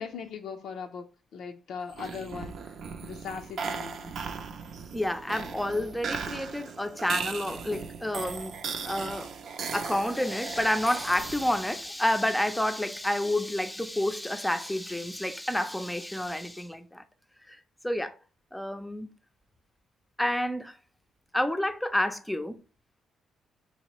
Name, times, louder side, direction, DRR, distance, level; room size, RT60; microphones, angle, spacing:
voice 1, 0.0-2.7 3.0-4.1, left 6 dB, 75° left, 0.4 m, -39 dB
sound 1, 1.9-11.8, right 5 dB, 60° right, 0.6 m, -37 dB
voice 2, 4.9-9.3 9.7-17.0 17.5-18.2 18.5-19.1 20.2-20.8 21.3-22.6, left 1 dB, 5° left, 0.5 m, -29 dB
4.1 x 2.7 x 3.0 m
cardioid pair, 90°, 0 cm